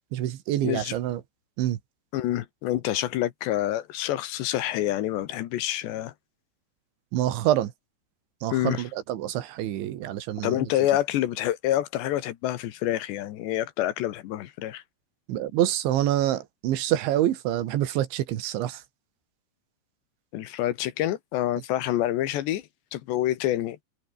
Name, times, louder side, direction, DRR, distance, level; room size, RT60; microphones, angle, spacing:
voice 1, 0.1-1.2 1.6-1.8 7.1-7.7 8.4-10.7 15.3-18.8, right 12 dB, 75° right, 4.0 m, -26 dB
voice 2, 0.6-1.0 2.1-6.1 8.5-8.8 10.4-14.8 20.3-23.8, left 13 dB, 70° left, 3.3 m, -27 dB
omnidirectional pair, 5.4 m